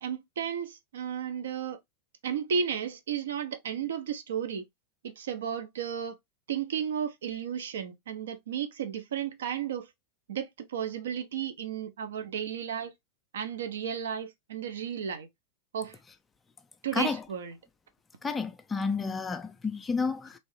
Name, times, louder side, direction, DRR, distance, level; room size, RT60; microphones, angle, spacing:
voice 1, 0.0-1.8 2.2-4.6 5.0-6.2 6.5-9.9 10.3-12.9 13.3-15.3 15.7-16.0 16.8-17.5, right 8 dB, 60° right, 0.6 m, -33 dB
voice 2, 16.9-17.2 18.2-20.4, left 4 dB, 15° left, 0.4 m, -31 dB
3.1 x 2.6 x 3.0 m
figure-of-eight pair, 90°, 0 cm